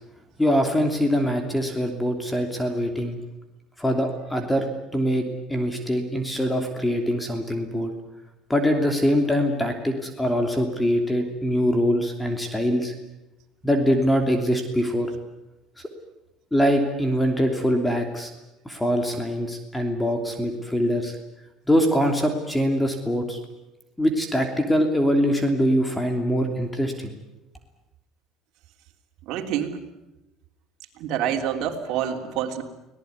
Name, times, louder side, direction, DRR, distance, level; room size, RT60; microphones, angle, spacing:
voice 1, 0.4-3.2 3.8-4.6 4.9-7.9 8.5-12.9 13.6-15.1 16.5-18.3 18.6-21.2 21.7-23.4 24.0-27.1, equal, 5° left, 5 dB, 3.0 m, -23 dB
voice 2, 29.2-29.8 31.0-32.6, right 9 dB, 65° right, 2 dB, 3.5 m, -27 dB
24.5 x 18.5 x 9.6 m, 0.98 s
cardioid pair, 125°, 0 cm